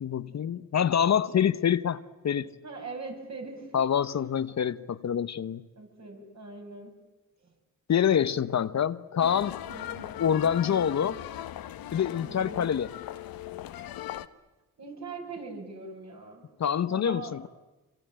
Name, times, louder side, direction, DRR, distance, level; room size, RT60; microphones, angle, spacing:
voice 1, 0.0-2.5 3.7-5.7 7.9-9.6 10.2-11.2 11.9-12.9 16.6-17.5, left 8 dB, 50° left, 0.9 m, -26 dB
voice 2, 2.6-3.8 5.8-6.9 7.4-7.5 9.7-10.1 12.2-12.8 14.8-16.4 16.9-17.4, right 4 dB, 50° right, 7.7 m, -41 dB
sound 1, 9.2-14.3, left 12 dB, 80° left, 1.0 m, -39 dB
26.0 x 25.0 x 8.9 m
cardioid pair, 75°, 34 cm